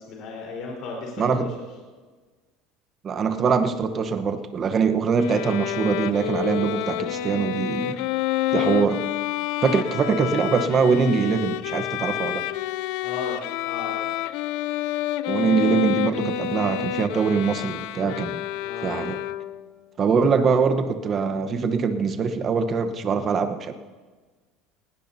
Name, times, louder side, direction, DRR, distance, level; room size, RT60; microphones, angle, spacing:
voice 1, 0.0-1.5 8.5-8.8 12.8-13.4 13.6-14.1 18.6-19.0, left 4 dB, 50° left, -2 dB, 4.2 m, -35 dB
voice 2, 1.2-1.5 3.0-8.0 8.5-9.0 9.6-12.4 15.3-18.4 18.8-19.2 20.0-23.7, right 5 dB, 30° right, 9 dB, 1.0 m, -23 dB
Bowed string instrument, 5.2-19.7, left 14 dB, 70° left, 0.4 m, -28 dB
19.5 x 18.0 x 2.8 m, 1.4 s
cardioid pair, 150°, 0 cm